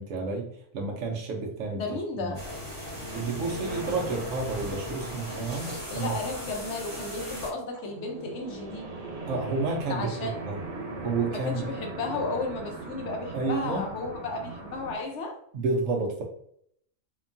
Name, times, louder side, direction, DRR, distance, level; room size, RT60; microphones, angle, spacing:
voice 1, 0.0-1.8 2.2-2.4 3.1-6.1 9.3-10.6 11.0-11.6 13.3-13.9 15.5-16.2, right 3 dB, 70° right, -1 dB, 0.9 m, -30 dB
voice 2, 1.7-2.4 5.9-8.9 9.9-10.4 11.3-15.3, left 3 dB, 65° left, 2 dB, 0.9 m, -34 dB
sound 1, 2.3-7.5, equal, 25° right, 1.4 m, -37 dB
sound 2, 3.7-15.0, right 3 dB, 85° right, 0.3 m, -40 dB
2.8 x 2.2 x 2.5 m, 0.68 s
omnidirectional pair, 1.4 m